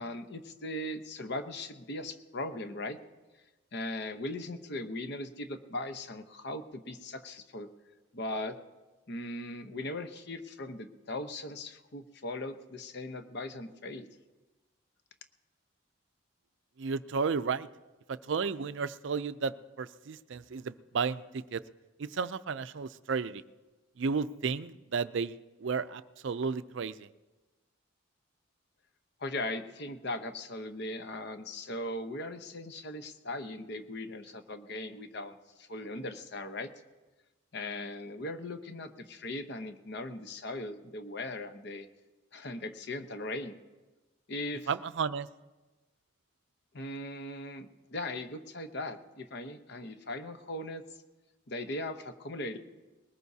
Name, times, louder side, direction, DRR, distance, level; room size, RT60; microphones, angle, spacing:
voice 1, 0.0-3.0 3.7-7.7 8.1-8.6 9.1-14.1 29.2-36.7 37.5-41.9 42.3-43.6 44.3-44.7 46.7-50.8 51.5-52.6, left 1 dB, 55° left, 8 dB, 0.9 m, -39 dB
voice 2, 16.8-17.7 18.1-21.6 22.0-23.4 24.0-27.1 44.7-45.3, right 5 dB, 60° right, 14 dB, 0.4 m, -33 dB
21.0 x 19.0 x 2.8 m, 1.2 s
head